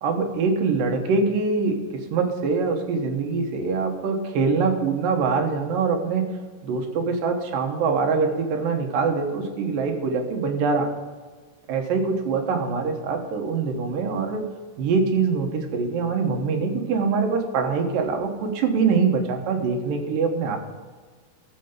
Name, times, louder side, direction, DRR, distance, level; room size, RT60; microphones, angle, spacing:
voice 1, 0.0-6.2 6.6-10.9 11.7-14.5 14.8-20.6, right 4 dB, 90° right, 3 dB, 2.9 m, -24 dB
13.5 x 6.8 x 5.2 m, 1.5 s
omnidirectional pair, 3.9 m